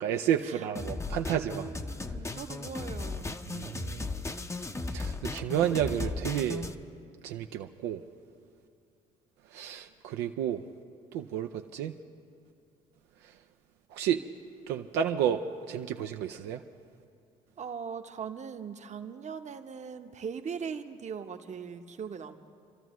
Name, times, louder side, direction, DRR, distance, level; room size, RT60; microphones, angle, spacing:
voice 1, 0.0-1.6 3.5-4.1 4.9-6.7 7.2-8.0 9.5-10.6 11.1-11.9 13.9-14.2 14.7-16.6, right 9 dB, 75° right, 5 dB, 0.5 m, -31 dB
sound 1, 0.8-6.8, left 3 dB, 15° left, 0.7 m, -36 dB
voice 2, 1.2-3.4 17.6-22.4, right 6 dB, 45° right, 8 dB, 0.9 m, -40 dB
28.5 x 13.0 x 3.1 m, 2.4 s
hypercardioid pair, 60°, 17 cm